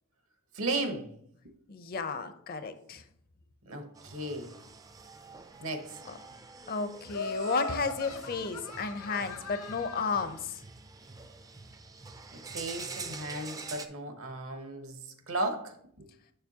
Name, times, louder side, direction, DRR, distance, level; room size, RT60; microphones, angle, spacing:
voice 1, 0.5-1.1 3.6-4.5 5.6-6.0 12.3-16.1, right 2 dB, 70° right, 7 dB, 0.9 m, -35 dB
voice 2, 1.7-3.0 6.7-10.6, left 4 dB, 45° left, 10 dB, 0.5 m, -33 dB
sound 1, 4.0-13.9, right 4 dB, 15° right, 0.3 m, -46 dB
Laughter, 7.1-10.3, left 3 dB, 80° left, 0.8 m, -39 dB
6.8 x 6.7 x 2.8 m, 0.69 s
head